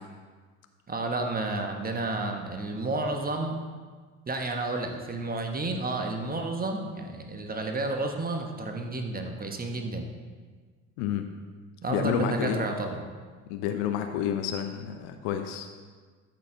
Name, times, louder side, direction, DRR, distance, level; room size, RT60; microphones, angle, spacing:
voice 1, 0.9-3.6 4.3-10.0 11.8-13.0, right 2 dB, 20° right, 3 dB, 1.3 m, -31 dB
voice 2, 11.9-12.6 13.5-15.7, left 9 dB, 60° left, 6 dB, 0.9 m, -29 dB
13.5 x 6.8 x 3.9 m, 1.5 s
hypercardioid pair, 65°, 42 cm